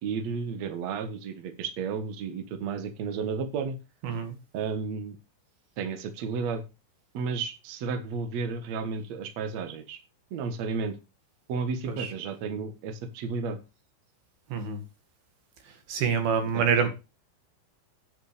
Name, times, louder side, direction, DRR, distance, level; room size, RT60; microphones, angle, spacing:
voice 1, 0.0-3.8 4.5-5.2 5.8-6.6 7.1-10.0 10.3-11.0 11.5-13.6 16.5-16.9, right 5 dB, 80° right, 1.5 m, -32 dB
voice 2, 4.0-4.3 11.9-12.1 14.5-14.8 15.9-16.9, right 6 dB, 60° right, 3.3 m, -26 dB
9.3 x 6.2 x 6.6 m
omnidirectional pair, 5.4 m